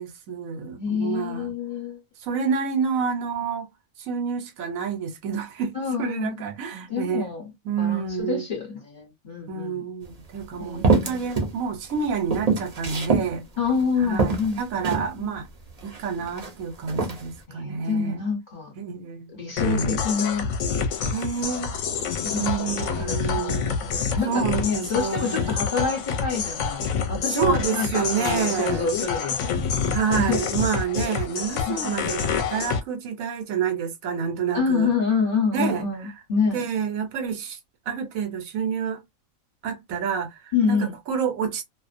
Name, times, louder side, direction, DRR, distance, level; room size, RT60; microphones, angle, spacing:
voice 1, 0.0-1.5 2.2-3.7 4.0-7.3 7.6-8.4 9.5-13.4 14.0-14.3 14.6-15.5 15.8-18.2 18.8-19.3 19.6-20.0 21.1-21.7 22.4-23.8 24.3-25.6 27.3-28.9 29.9-34.9 35.5-35.8 36.5-37.6 37.9-39.0 39.6-41.6, right 6 dB, 80° right, 1.1 m, -28 dB
voice 2, 0.8-2.0 5.7-6.3 6.7-7.4 7.8-9.9 10.6-11.2 13.6-14.6 14.9-15.3 17.5-18.7 19.3-20.5 21.4-21.6 22.2-30.4 31.7-32.1 34.5-36.7 40.5-40.9, left 5 dB, 40° left, 1.0 m, -27 dB
sound 1, 10.0-10.1 10.8-11.5 11.9-13.3 13.8-13.9 14.2-15.1 15.8-16.5 16.9-17.2, right 4 dB, 40° right, 0.6 m, -24 dB
sound 2, 19.6-32.8, left 6 dB, 70° left, 0.9 m, -27 dB
2.4 x 2.1 x 2.4 m
omnidirectional pair, 1.4 m